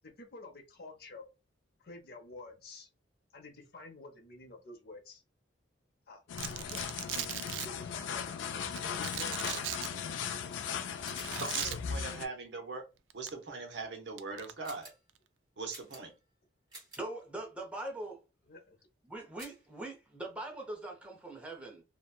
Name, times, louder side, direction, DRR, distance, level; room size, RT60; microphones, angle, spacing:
voice 1, 0.0-1.3 1.8-2.9 3.3-5.2 6.1-6.2 6.5-6.8 7.4-9.7 11.2-12.3 18.4-18.8, left 2 dB, 55° left, 0.7 m, -50 dB
sound 1, 6.3-12.3, left 7 dB, 85° left, 0.3 m, -37 dB
Domestic sounds home sounds, 6.4-7.7 8.8-9.9 11.2-11.8 13.1-13.3 14.2-14.5, right 11 dB, 90° right, 0.3 m, -38 dB
sound 2, 11.0-11.6 14.6-15.1 15.7-16.3 16.7-17.1 19.4-19.7, right 2 dB, 25° right, 1.3 m, -51 dB
voice 2, 11.3-12.8 13.1-14.9 15.6-16.1, right 3 dB, 70° right, 0.8 m, -41 dB
voice 3, 17.0-18.2 19.1-21.8, right 2 dB, 5° right, 0.6 m, -42 dB
2.8 x 2.1 x 2.2 m
head